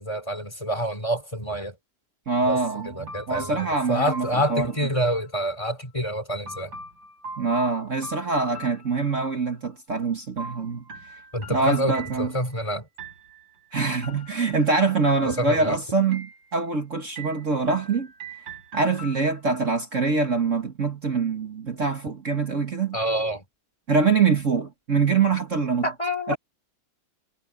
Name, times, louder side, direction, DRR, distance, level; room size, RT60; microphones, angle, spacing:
voice 1, 0.0-1.7 2.4-2.6 2.8-6.7 11.3-12.9 15.2-15.8 22.9-23.4 25.8-26.4, equal, 15° left, 3.9 m, -27 dB
voice 2, 2.3-4.7 7.4-10.8 11.5-12.3 13.7-18.1 18.7-23.0 23.9-25.8 26.3-26.4, right 4 dB, 40° right, 1.9 m, -24 dB
sound 1, 2.5-5.3 6.5-9.5 10.4-12.6 13.0-13.6 14.0-14.7 15.1-15.7 16.1-16.8 17.2-19.6, right 2 dB, 80° right, 6.1 m, -41 dB
omnidirectional pair, 2.1 m